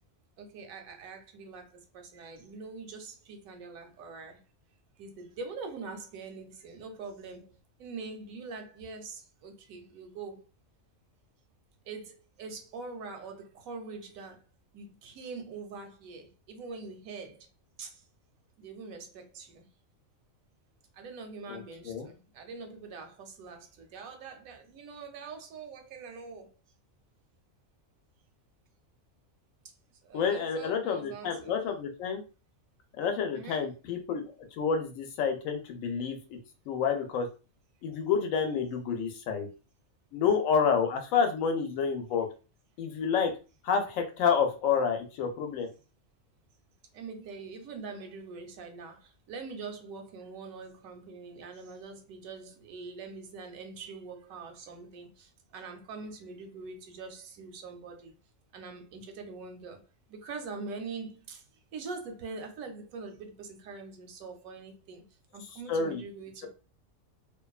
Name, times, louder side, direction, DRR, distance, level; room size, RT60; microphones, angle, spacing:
voice 1, 0.4-4.4 5.0-7.5 7.8-10.4 11.9-14.4 14.7-17.5 17.8-18.0 18.6-19.7 20.9-26.5 30.0-31.6 33.3-33.7 45.5-45.8 46.9-58.1 58.5-61.4 61.7-65.0 65.3-66.5, right 4 dB, 85° right, 1.1 m, -43 dB
voice 2, 21.5-22.1 30.1-32.2 33.0-34.2 34.5-36.2 36.7-37.3 37.8-39.5 40.1-42.3 42.8-43.3 43.6-45.7 65.7-66.0, left 6 dB, 75° left, 1.0 m, -29 dB
2.5 x 2.2 x 2.3 m
omnidirectional pair, 1.4 m